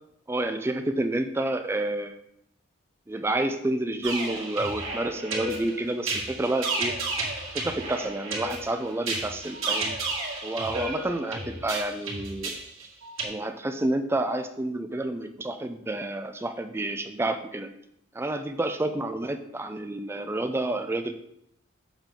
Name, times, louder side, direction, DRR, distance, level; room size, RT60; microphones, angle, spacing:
voice 1, 0.3-2.2 3.1-6.9 7.5-9.9 10.4-12.6 13.2-17.7 18.1-21.2, right 1 dB, 10° right, 8 dB, 0.3 m, -29 dB
sound 1, 4.0-13.3, right 3 dB, 90° right, 2.0 m, -32 dB
7.3 x 5.2 x 3.7 m, 0.76 s
head